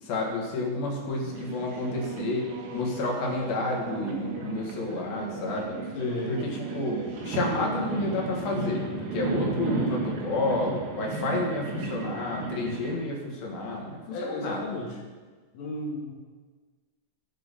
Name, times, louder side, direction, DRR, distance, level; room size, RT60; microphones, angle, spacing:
voice 1, 0.0-5.8 6.3-14.6, left 2 dB, 55° left, -1 dB, 3.0 m, -30 dB
Singing / Musical instrument, 0.9-11.0, right 6 dB, 75° right, 4.1 m, -41 dB
sound 1, 1.3-13.0, right 3 dB, 60° right, 2.9 m, -35 dB
voice 2, 6.0-6.4 14.1-15.0 15.5-16.1, left 2 dB, 80° left, -3 dB, 4.8 m, -33 dB
19.5 x 6.4 x 4.2 m, 1.4 s
omnidirectional pair, 5.8 m